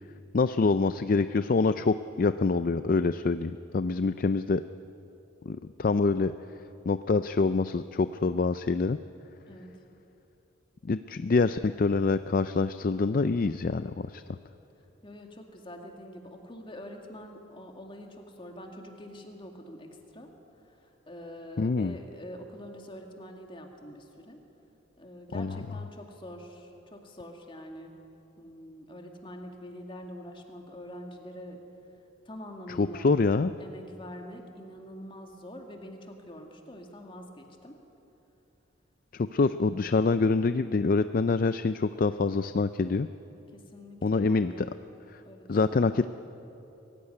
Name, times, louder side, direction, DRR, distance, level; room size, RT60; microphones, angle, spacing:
voice 1, 0.3-4.6 5.5-6.3 6.9-9.0 10.8-14.2 21.6-22.0 25.3-25.6 32.7-33.6 39.1-43.1 44.0-44.7 45.1-45.2 45.5-46.1, left 4 dB, 45° left, 12 dB, 0.4 m, -26 dB
voice 2, 15.0-20.3 21.1-24.4 25.0-27.9 28.4-31.6 32.3-33.2 33.6-37.8 39.4-39.8 43.5-44.8 45.2-46.1, equal, 25° left, 2 dB, 2.2 m, -45 dB
23.0 x 15.5 x 9.8 m, 3.0 s
head